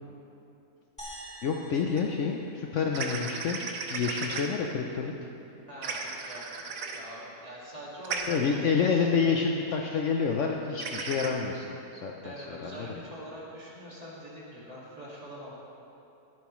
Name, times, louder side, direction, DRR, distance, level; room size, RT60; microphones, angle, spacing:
sound 1, 1.0-3.4, right 1 dB, 5° left, 2.0 m, -47 dB
voice 1, 1.4-3.6 3.9-5.3 8.3-13.0, left 5 dB, 65° left, 1 dB, 0.9 m, -28 dB
sound 2, 2.0-2.1 2.9-4.5 5.8-7.0 8.0-8.4 10.8-11.3, right 4 dB, 65° right, 1.2 m, -35 dB
voice 2, 5.7-9.3 12.2-15.5, equal, 25° right, -6 dB, 2.1 m, -44 dB
13.5 x 10.5 x 3.1 m, 2.9 s
omnidirectional pair, 1.6 m